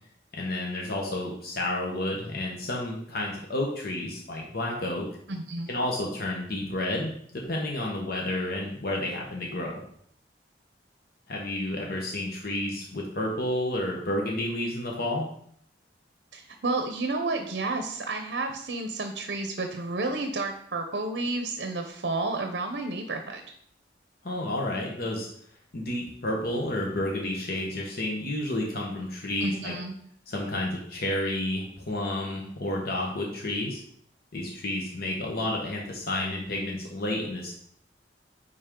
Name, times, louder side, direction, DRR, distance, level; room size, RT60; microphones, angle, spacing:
voice 1, 0.4-5.1 5.7-9.7 11.3-15.2 24.2-25.3 25.7-29.7 30.3-33.8 34.3-37.5, left 1 dB, 60° left, -1 dB, 1.2 m, -30 dB
voice 2, 5.3-5.7 16.3-23.4 29.4-30.0, right 2 dB, 65° right, 5 dB, 0.8 m, -31 dB
9.8 x 4.2 x 3.8 m, 0.65 s
head